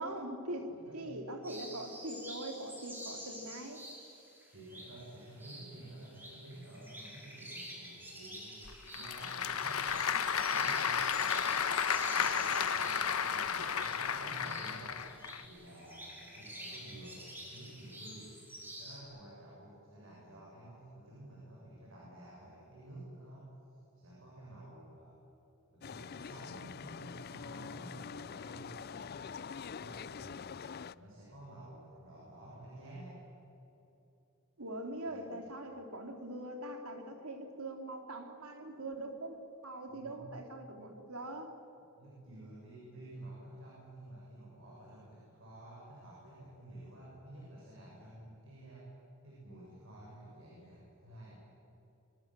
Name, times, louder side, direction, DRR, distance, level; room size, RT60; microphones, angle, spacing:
voice 1, 0.0-3.8 34.6-41.5, right 1 dB, 85° right, 5 dB, 3.1 m, -42 dB
voice 2, 0.7-1.1 3.1-3.2 4.5-15.0 15.4-18.3 18.8-25.2 25.7-29.0 29.6-30.5 30.9-33.2 35.0-35.4 39.9-40.3 42.0-48.9 49.2-51.4, right 1 dB, 60° right, -5 dB, 7.2 m, -52 dB
sound 1, 1.4-19.0, equal, 10° right, 5.2 m, -49 dB
Applause / Crowd, 8.7-15.4, left 7 dB, 80° left, 1.3 m, -33 dB
sound 2, 25.8-30.9, left 6 dB, 45° left, 0.4 m, -45 dB
25.0 x 23.5 x 7.7 m, 3.0 s
head